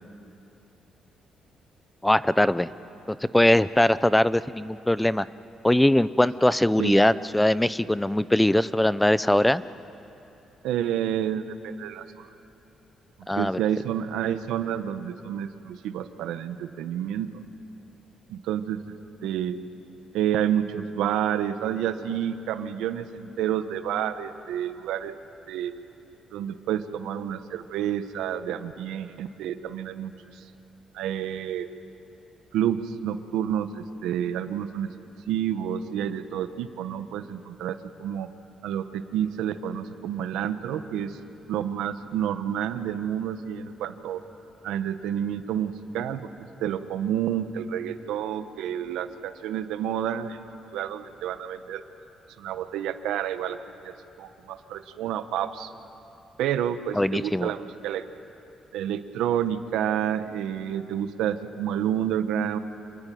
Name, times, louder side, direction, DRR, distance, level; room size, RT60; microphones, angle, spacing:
voice 1, 2.0-2.7 3.1-5.3 5.6-9.6 13.3-13.6 57.0-57.5, left 1 dB, 10° left, 16 dB, 0.6 m, -21 dB
voice 2, 10.6-12.3 13.3-17.3 18.3-18.8 19.2-19.6 20.1-25.1 25.5-25.7 26.3-30.1 30.9-31.7 32.5-34.9 35.3-38.3 38.6-41.2 41.5-44.2 44.6-46.3 46.6-50.4 50.7-51.8 52.4-55.7 56.4-58.0 58.7-62.6, right 10 dB, 90° right, 10 dB, 1.3 m, -29 dB
27.5 x 22.5 x 9.4 m, 2.9 s
cardioid pair, 90°, 0 cm